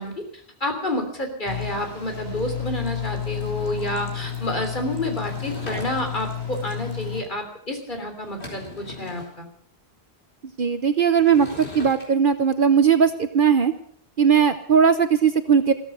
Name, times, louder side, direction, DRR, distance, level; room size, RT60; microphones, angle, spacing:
voice 1, 0.0-9.5, left 1 dB, 50° left, 5 dB, 3.4 m, -29 dB
sound 1, 1.5-7.2, left 9 dB, 20° left, 3.4 m, -31 dB
Sliding door / Wood, 5.1-6.4 7.9-8.0 8.2-9.3 11.1-12.1, left 2 dB, 90° left, 4.4 m, -39 dB
voice 2, 10.6-13.7 14.2-15.7, right 7 dB, 55° right, 10 dB, 1.0 m, -18 dB
15.5 x 14.0 x 5.6 m, 0.63 s
omnidirectional pair, 1.1 m